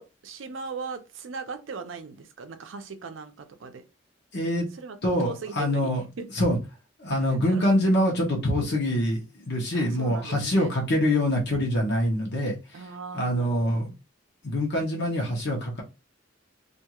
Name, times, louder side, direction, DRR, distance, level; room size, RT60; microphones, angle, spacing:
voice 1, 0.0-3.8 4.7-6.3 7.2-7.9 9.7-10.7 12.7-13.8, right 4 dB, 85° right, 0.5 m, -38 dB
voice 2, 4.3-4.7 5.0-6.0 6.3-6.6 7.0-12.5 13.1-13.9 14.4-15.8, left 1 dB, 60° left, 0.9 m, -25 dB
2.5 x 2.3 x 2.9 m
head